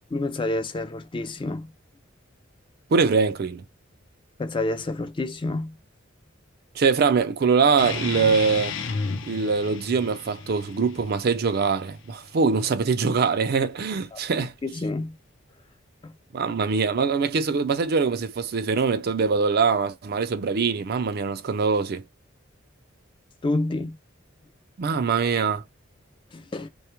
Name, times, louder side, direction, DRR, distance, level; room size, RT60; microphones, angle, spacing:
voice 1, 0.1-1.7 4.4-5.8 14.1-14.2 14.6-15.2 16.0-16.2 23.4-24.0 26.3-26.7, left 2 dB, 25° left, 0.4 m, -28 dB
voice 2, 2.9-3.6 6.7-8.8 9.3-14.5 16.3-22.0 24.8-25.6, right 5 dB, 50° right, 0.4 m, -23 dB
sound 1, 7.8-12.8, left 4 dB, 70° left, 0.6 m, -34 dB
2.2 x 2.1 x 2.9 m
head